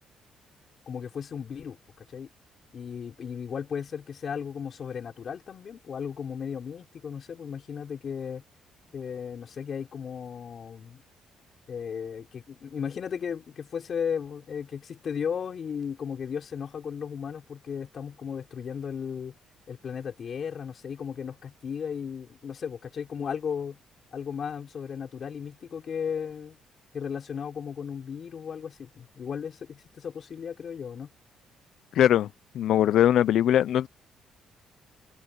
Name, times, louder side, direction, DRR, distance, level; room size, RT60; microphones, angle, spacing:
voice 1, 0.9-2.3 2.7-8.4 8.9-11.0 11.7-19.3 19.7-23.8 24.1-26.6 26.9-31.1, left 7 dB, 35° left, 5.9 m, -35 dB
voice 2, 31.9-32.3 32.5-33.9, left 11 dB, 60° left, 0.4 m, -21 dB
cardioid pair, 170°, 0 cm